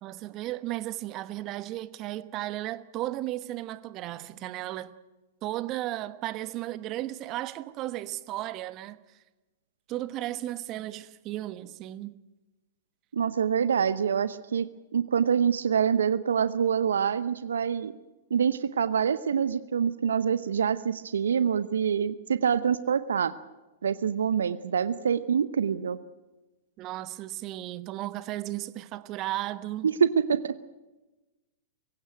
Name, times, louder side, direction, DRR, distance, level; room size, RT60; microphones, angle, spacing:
voice 1, 0.0-4.9 5.4-9.0 9.9-12.2 26.8-29.9, right 15 dB, 40° right, 1.2 m, -35 dB
voice 2, 13.1-14.7 14.9-17.9 18.3-23.3 23.8-26.0 29.8-30.5, right 7 dB, 75° right, 0.8 m, -25 dB
23.0 x 16.5 x 9.1 m
figure-of-eight pair, 105°, 0 cm